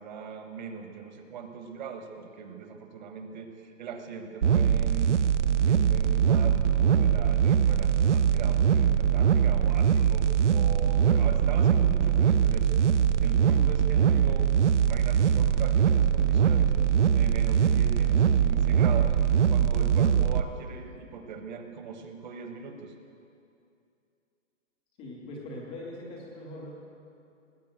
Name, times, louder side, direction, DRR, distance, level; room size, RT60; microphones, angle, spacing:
voice 1, 0.0-5.3 5.7-12.7 13.2-14.5 14.8-16.7 17.1-19.2 19.5-22.9, right 6 dB, 35° right, 6 dB, 1.3 m, -40 dB
sound 1, 4.4-20.4, right 8 dB, 65° right, 0.7 m, -22 dB
voice 2, 25.0-26.8, left 1 dB, 5° left, -13 dB, 0.5 m, -41 dB
19.0 x 8.5 x 7.9 m, 2.6 s
hypercardioid pair, 155°, 39 cm